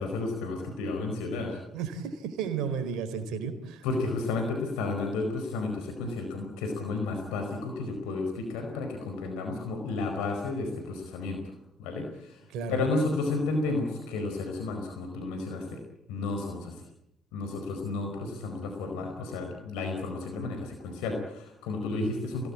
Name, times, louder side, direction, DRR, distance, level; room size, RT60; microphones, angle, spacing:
voice 1, 0.0-1.6 3.8-11.5 11.8-12.4 12.7-15.8 16.1-16.8 17.3-22.5, left 3 dB, 85° left, 4 dB, 4.8 m, -32 dB
voice 2, 1.7-3.8 12.5-12.8 21.9-22.1, right 6 dB, 75° right, 10 dB, 4.4 m, -33 dB
28.5 x 19.0 x 8.7 m, 0.84 s
hypercardioid pair, 55°, 0 cm